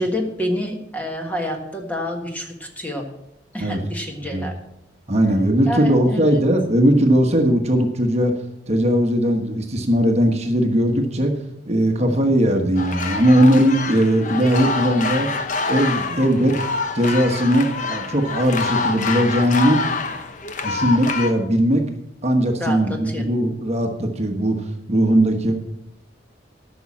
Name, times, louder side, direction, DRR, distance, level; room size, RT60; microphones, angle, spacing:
voice 1, 0.0-3.1 3.5-4.6 5.6-6.4 12.0-12.3 16.1-16.4 22.6-23.3, equal, 10° left, 2 dB, 1.5 m, -28 dB
voice 2, 5.1-8.4 8.7-11.3 11.7-15.3 15.7-16.5 16.9-19.8 20.6-21.9 22.2-24.6 24.9-25.5, equal, 35° right, 3 dB, 1.2 m, -18 dB
sound 1, 12.8-21.3, left 4 dB, 45° left, 0.9 m, -26 dB
12.5 x 6.2 x 7.3 m, 0.82 s
head